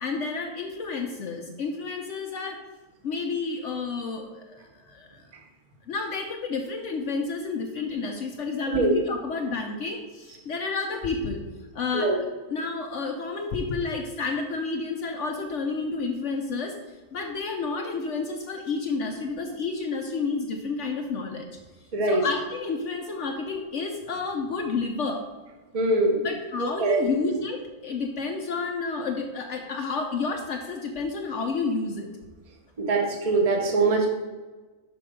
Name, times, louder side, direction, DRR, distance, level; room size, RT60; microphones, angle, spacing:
voice 1, 0.0-2.6 3.0-5.2 5.9-11.4 11.7-12.2 12.5-16.8 17.1-21.5 22.1-25.3 26.2-32.1, left 4 dB, 65° left, 3 dB, 0.9 m, -30 dB
voice 2, 21.9-22.2 25.7-26.2 26.8-27.0 32.8-34.1, right 2 dB, 30° right, 2 dB, 0.9 m, -22 dB
6.1 x 4.5 x 5.0 m, 1.3 s
omnidirectional pair, 1.6 m